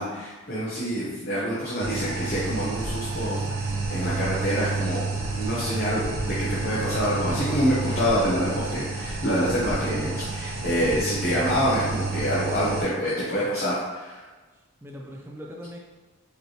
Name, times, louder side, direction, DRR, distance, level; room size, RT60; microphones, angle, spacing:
voice 1, 0.0-5.0 5.4-14.2, equal, 45° left, -8 dB, 0.9 m, -26 dB
sound 1, 1.8-12.8, right 3 dB, 70° right, 0.7 m, -30 dB
voice 2, 9.8-11.0 13.4-13.5 14.8-15.8, equal, 10° right, -1 dB, 0.4 m, -42 dB
4.9 x 3.0 x 3.1 m, 1.2 s
head